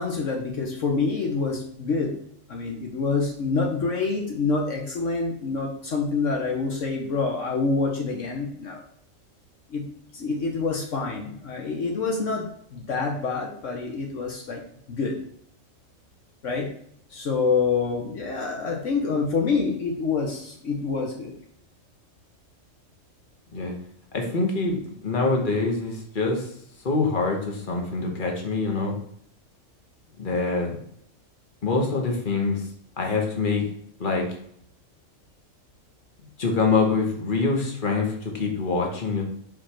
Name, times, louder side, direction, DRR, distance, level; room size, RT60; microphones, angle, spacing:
voice 1, 0.0-2.1 2.5-8.8 9.7-9.9 10.1-14.6 14.9-15.2 16.4-16.7 17.1-21.3, left 4 dB, 70° left, 1 dB, 1.3 m, -27 dB
voice 2, 24.1-26.5 26.8-29.0 30.2-30.8 31.6-32.7 33.0-33.6 34.0-34.3 36.4-39.2, left 3 dB, 40° left, 1 dB, 1.5 m, -25 dB
5.0 x 4.2 x 5.8 m, 0.69 s
omnidirectional pair, 1.4 m